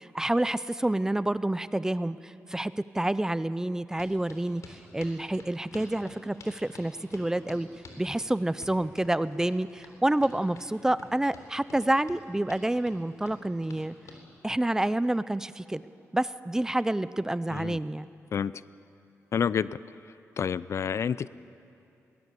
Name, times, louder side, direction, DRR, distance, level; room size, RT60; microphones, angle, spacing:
voice 1, 0.0-7.7 8.0-13.9 14.4-15.8 16.1-18.1, right 1 dB, 10° right, 16 dB, 0.4 m, -28 dB
sound 1, 4.0-14.2, left 3 dB, 80° left, 3.5 m, -49 dB
voice 2, 18.3-18.6 19.3-19.8 20.4-21.3, left 7 dB, 55° left, 18 dB, 0.4 m, -28 dB
22.0 x 18.5 x 8.3 m, 2.7 s
wide cardioid pair, 115°, 6 cm